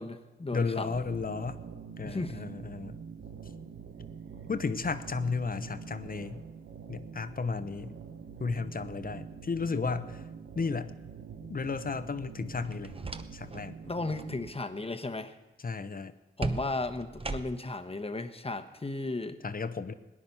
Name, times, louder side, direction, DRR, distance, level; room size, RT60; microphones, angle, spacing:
voice 1, 0.0-1.0 2.0-2.4 13.8-15.3 16.4-19.4, left 2 dB, 30° left, 7 dB, 1.2 m, -35 dB
voice 2, 0.5-1.6 2.0-3.0 4.5-6.4 6.9-7.9 8.4-10.2 10.5-10.9 11.5-12.9 13.3-13.7 15.6-16.1 19.4-19.9, left 4 dB, 45° left, 12 dB, 0.9 m, -33 dB
sound 1, 0.9-14.5, right 6 dB, 75° right, 1.0 m, -45 dB
sound 2, 12.6-13.7 14.0-14.3 16.4-17.8, right 3 dB, 25° right, 0.9 m, -37 dB
18.0 x 10.0 x 5.6 m, 1.1 s
cardioid pair, 45°, 21 cm